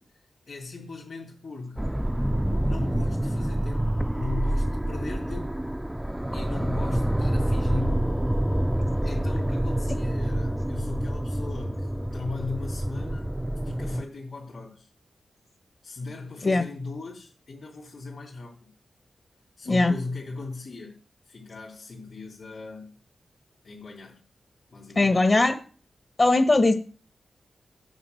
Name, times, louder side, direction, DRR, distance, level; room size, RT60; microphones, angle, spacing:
voice 1, 0.5-1.8 2.6-5.6 6.3-8.1 9.0-13.3 13.6-14.9 15.8-18.7 19.6-21.0 21.2-22.9 23.6-24.2 24.7-25.2, left 3 dB, 70° left, 2.6 m, -38 dB
sound 1, 1.8-14.0, right 1 dB, 10° right, 0.4 m, -27 dB
voice 2, 25.0-25.6 26.2-26.7, left 2 dB, 50° left, 1.1 m, -20 dB
9.4 x 4.9 x 7.8 m
cardioid pair, 55°, 0 cm